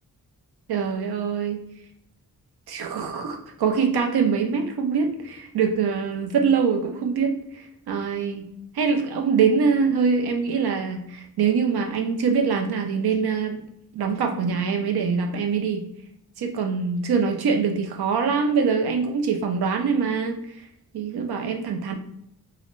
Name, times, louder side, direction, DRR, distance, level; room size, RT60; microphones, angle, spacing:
voice 1, 0.7-1.6 2.7-8.4 8.7-13.6 13.9-15.8 16.4-20.4 20.9-22.0, right 5 dB, 80° right, 4 dB, 0.5 m, -24 dB
2.4 x 2.0 x 3.0 m, 0.76 s
cardioid pair, 65°, 38 cm